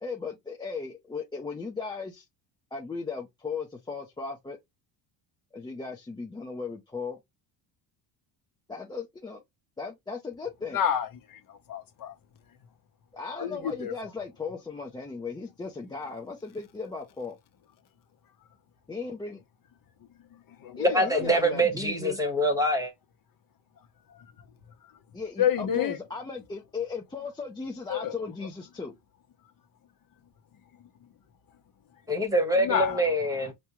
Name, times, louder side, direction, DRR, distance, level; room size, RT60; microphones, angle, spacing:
voice 1, 0.0-2.3 2.7-4.6 5.5-7.2 8.7-9.4 9.8-10.8 13.1-17.4 18.9-19.4 20.8-22.2 25.1-28.9, left 4 dB, 10° left, 0.5 m, -36 dB
voice 2, 10.7-12.1 13.4-13.9 20.6-21.4 25.4-26.0 27.9-28.1 32.6-33.0, left 9 dB, 45° left, 0.9 m, -29 dB
voice 3, 20.9-22.9 32.1-33.5, right 1 dB, 5° right, 1.1 m, -25 dB
5.2 x 2.2 x 3.0 m
cardioid pair, 135°, 48 cm